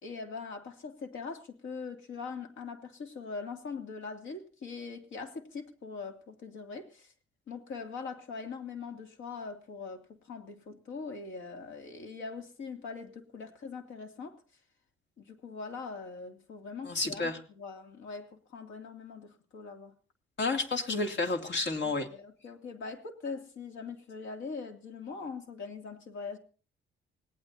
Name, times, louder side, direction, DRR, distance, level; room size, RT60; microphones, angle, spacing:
voice 1, 0.0-7.1 7.5-14.4 15.2-19.9 21.8-26.4, left 4 dB, 75° left, 2.7 m, -42 dB
voice 2, 16.8-17.4 20.4-22.1, left 3 dB, 60° left, 2.8 m, -30 dB
26.0 x 18.0 x 2.8 m
cardioid pair, 90°, 20 cm